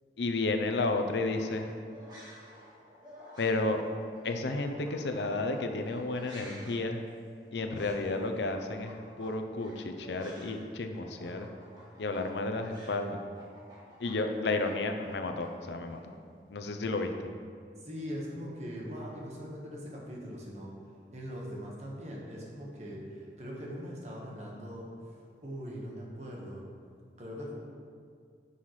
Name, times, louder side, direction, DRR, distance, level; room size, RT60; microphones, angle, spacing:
voice 1, 0.2-1.6 3.4-3.8 4.2-7.0 7.5-11.5 12.0-13.2 14.0-16.0 16.5-17.1, left 2 dB, 80° left, 6 dB, 0.6 m, -32 dB
sound 1, 1.0-10.7 10.9-16.0, equal, 25° right, 1.6 m, -53 dB
voice 2, 17.8-20.7 21.1-25.2 25.4-26.6 27.2-27.5, equal, 40° right, -3 dB, 1.3 m, -41 dB
10.0 x 5.6 x 3.2 m, 2.2 s
head